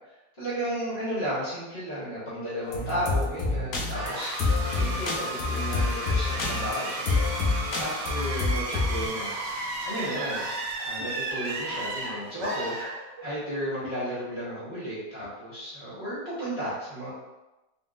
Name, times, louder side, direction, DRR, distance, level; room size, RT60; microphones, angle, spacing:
voice 1, 0.4-7.1 7.8-9.3 9.8-10.4 10.8-12.7 13.2-17.1, equal, 40° left, -10 dB, 1.8 m, -33 dB
sound 1, 2.7-9.0, left 3 dB, 65° left, 1.2 m, -27 dB
sound 2, 3.9-13.5, right 2 dB, 85° right, 1.4 m, -33 dB
4.0 x 3.6 x 2.5 m, 1.0 s
omnidirectional pair, 1.8 m